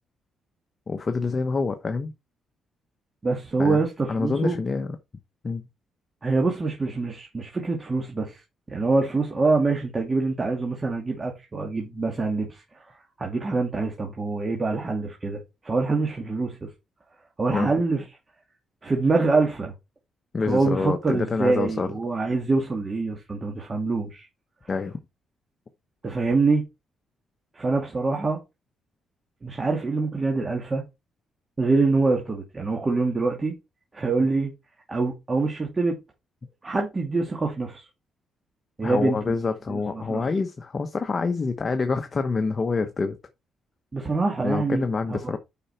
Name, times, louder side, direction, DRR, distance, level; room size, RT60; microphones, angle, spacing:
voice 1, 0.9-2.1 3.6-3.8 4.1-5.0 5.4-5.6 17.5-17.7 20.3-21.9 24.7-25.0 38.8-43.2 44.4-45.4, left 4 dB, 35° left, 1.1 m, -26 dB
voice 2, 3.2-4.6 6.2-16.7 17.4-18.0 18.8-19.7 20.5-24.3 26.0-26.6 27.5-28.4 29.4-30.8 31.6-33.5 33.9-34.5 34.9-36.0 36.6-37.9 38.8-39.3 39.7-40.3 43.9-45.3, right 3 dB, 30° right, 2.4 m, -25 dB
8.5 x 5.6 x 4.4 m
cardioid pair, 90°, 0 cm